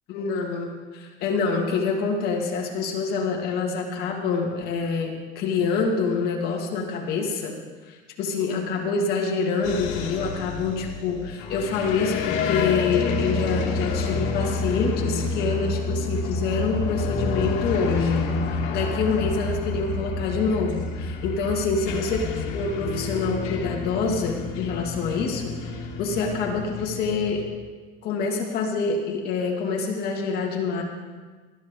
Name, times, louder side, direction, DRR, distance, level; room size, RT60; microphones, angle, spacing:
voice 1, 0.1-7.6 7.9-27.5 28.0-30.8, left 4 dB, 50° left, 0 dB, 2.2 m, -26 dB
sound 1, 9.6-27.4, left 3 dB, 75° left, 2.3 m, -29 dB
19.5 x 13.0 x 3.8 m, 1.4 s
cardioid pair, 170°, 20 cm